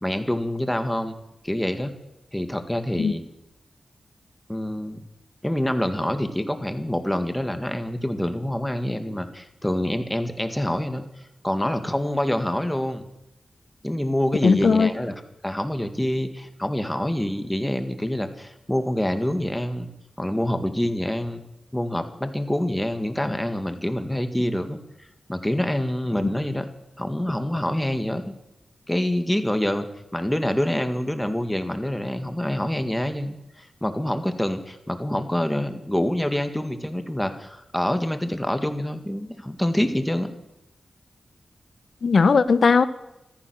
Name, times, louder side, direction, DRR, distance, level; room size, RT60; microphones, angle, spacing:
voice 1, 0.0-1.2 1.4-1.9 2.3-3.2 4.5-5.0 5.4-11.0 11.4-13.1 13.8-15.1 15.4-19.9 20.2-21.4 21.7-24.8 25.3-26.7 27.0-28.3 28.9-29.9 30.1-40.3, left 1 dB, 10° left, 8 dB, 1.9 m, -26 dB
voice 2, 14.4-14.9 42.0-42.8, left 5 dB, 65° left, 14 dB, 0.9 m, -17 dB
15.0 x 13.5 x 6.3 m, 0.89 s
cardioid pair, 55°, 0 cm